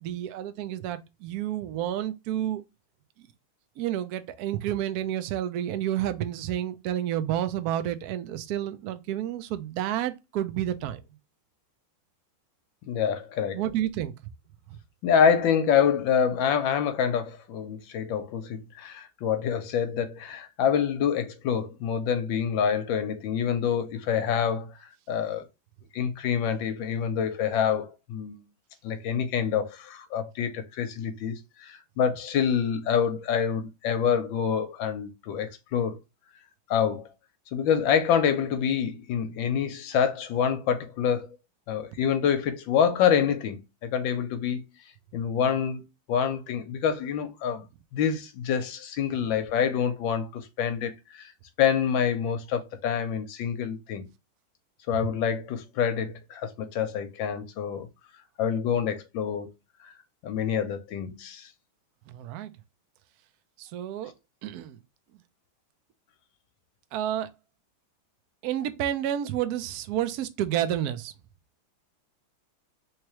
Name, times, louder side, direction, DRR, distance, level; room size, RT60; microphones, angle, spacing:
voice 1, 0.0-2.6 3.8-11.0 13.5-14.1 62.1-62.5 63.6-64.1 64.4-64.8 66.9-67.3 68.4-71.1, right 11 dB, 80° right, 0.8 m, -30 dB
voice 2, 12.8-13.6 15.0-25.5 25.9-28.4 28.8-36.0 36.7-37.1 37.5-41.3 41.7-44.6 45.1-47.6 47.9-51.3 51.6-54.0 54.9-57.9 58.4-59.5 59.8-59.9 60.2-61.5, left 7 dB, 75° left, 1.3 m, -26 dB
3.4 x 3.2 x 2.9 m
omnidirectional pair, 2.3 m